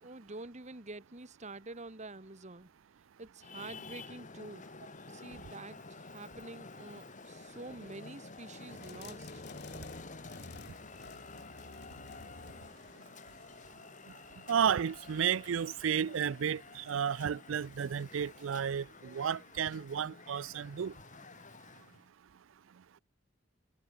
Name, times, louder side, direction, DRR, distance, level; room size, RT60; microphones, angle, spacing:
voice 1, 0.0-2.7 3.2-4.7 5.1-9.4, right 2 dB, 35° right, 2.0 m, -47 dB
Traffic noise roadway noise, 3.4-22.1, left 3 dB, 40° left, 2.2 m, -50 dB
sound 1, 8.7-13.8, left 4 dB, 60° left, 1.2 m, -52 dB
voice 2, 14.5-20.9, right 8 dB, 85° right, 0.4 m, -32 dB
head